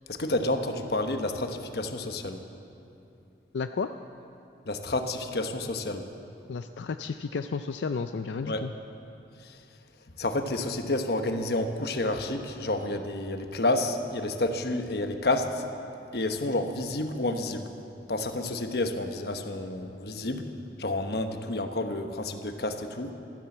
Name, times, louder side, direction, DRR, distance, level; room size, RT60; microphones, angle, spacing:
voice 1, 0.1-2.4 4.7-6.1 8.4-8.6 9.4-9.6 10.2-15.6 16.1-17.7 18.1-20.5 20.8-23.1, left 2 dB, 60° left, 6 dB, 1.1 m, -30 dB
voice 2, 3.5-3.9 6.5-8.7, left 5 dB, 90° left, 8 dB, 0.4 m, -32 dB
15.0 x 13.5 x 7.2 m, 2.7 s
head